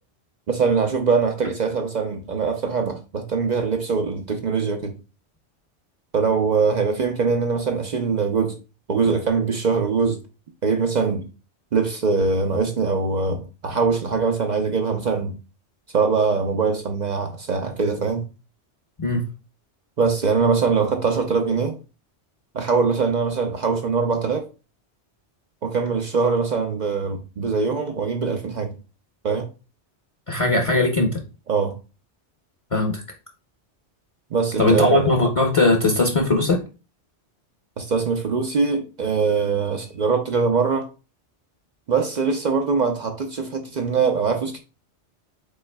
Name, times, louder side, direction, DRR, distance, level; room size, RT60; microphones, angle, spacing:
voice 1, 0.5-4.9 6.1-8.5 8.9-10.2 10.6-11.3 11.7-15.3 15.9-18.2 20.0-21.8 22.5-24.5 25.6-28.7 29.2-29.5 31.5-31.7 34.3-35.1 37.8-40.9 41.9-44.6, right 5 dB, 50° right, 0.5 m, -22 dB
voice 2, 30.3-31.2 32.7-33.0 34.6-36.6, left 2 dB, 35° left, 0.7 m, -19 dB
5.3 x 3.9 x 2.2 m
omnidirectional pair, 1.2 m